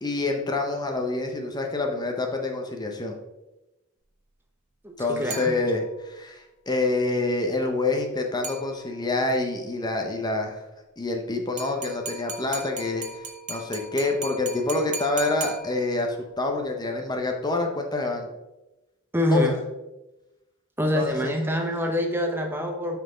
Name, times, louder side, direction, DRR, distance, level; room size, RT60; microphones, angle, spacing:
voice 1, 0.0-3.2 5.0-10.6 11.0-18.3 19.3-19.6 20.9-21.3, left 2 dB, 20° left, 3 dB, 0.8 m, -27 dB
voice 2, 4.8-5.5 19.1-19.6 20.8-23.0, equal, 10° right, 3 dB, 0.8 m, -25 dB
sound 1, 5.3-6.1 8.4-9.2 11.6-16.2, right 3 dB, 35° right, 1.0 m, -38 dB
5.9 x 5.6 x 5.0 m, 1.0 s
head